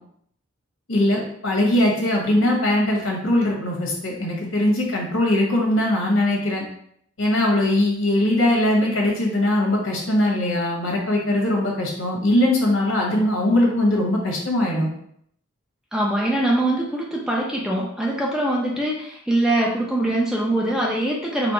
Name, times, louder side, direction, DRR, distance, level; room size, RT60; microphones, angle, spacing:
voice 1, 0.9-6.6 7.2-14.9, left 1 dB, 75° left, -1 dB, 1.3 m, -21 dB
voice 2, 15.9-21.5, right 1 dB, 5° right, -3 dB, 0.5 m, -23 dB
4.2 x 2.2 x 4.3 m, 0.67 s
head